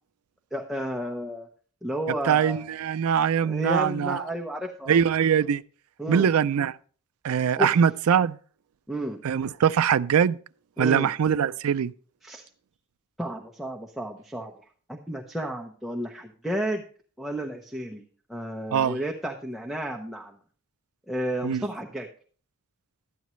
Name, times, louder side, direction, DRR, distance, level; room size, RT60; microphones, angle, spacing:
voice 1, 0.5-1.5 1.8-2.6 3.4-5.0 6.0-6.3 7.6-7.8 8.9-9.2 10.8-11.1 12.2-12.4 13.2-14.5 14.9-16.8 17.2-18.0 18.3-20.4 21.1-22.1, right 1 dB, ahead, 0.8 m, -32 dB
voice 2, 2.3-4.2 4.9-5.6 6.1-6.8 7.2-8.4 9.2-10.4 10.8-11.9 18.7-19.0 21.4-21.7, right 8 dB, 75° right, 0.4 m, -22 dB
12.0 x 9.3 x 3.1 m
head